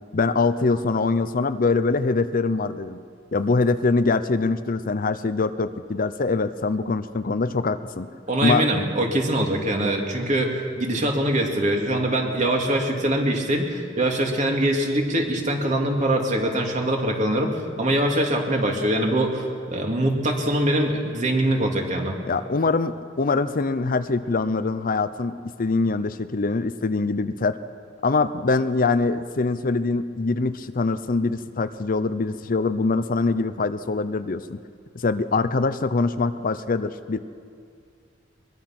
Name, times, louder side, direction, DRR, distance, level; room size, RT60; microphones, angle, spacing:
voice 1, 0.1-3.0 3.3-8.1 8.4-8.6 22.3-27.6 28.0-34.6 34.9-37.2, left 3 dB, 45° left, 12 dB, 0.6 m, -23 dB
voice 2, 8.3-22.2, right 1 dB, 40° right, 1 dB, 2.8 m, -23 dB
23.0 x 22.0 x 6.0 m, 2.3 s
head